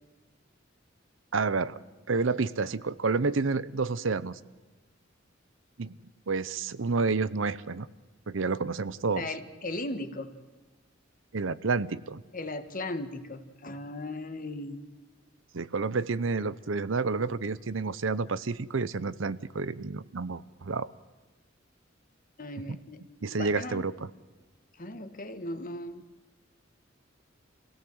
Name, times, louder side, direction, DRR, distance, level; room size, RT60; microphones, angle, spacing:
voice 1, 1.3-1.8 2.1-4.4 5.8-6.0 6.3-7.9 8.3-9.3 11.3-12.2 15.5-20.9 23.2-23.9, right 4 dB, 75° right, 16 dB, 0.7 m, -29 dB
voice 2, 9.1-10.3 12.3-14.9 22.4-23.8 24.7-26.0, left 2 dB, 45° left, 9 dB, 1.6 m, -37 dB
27.0 x 17.0 x 7.9 m, 1.2 s
head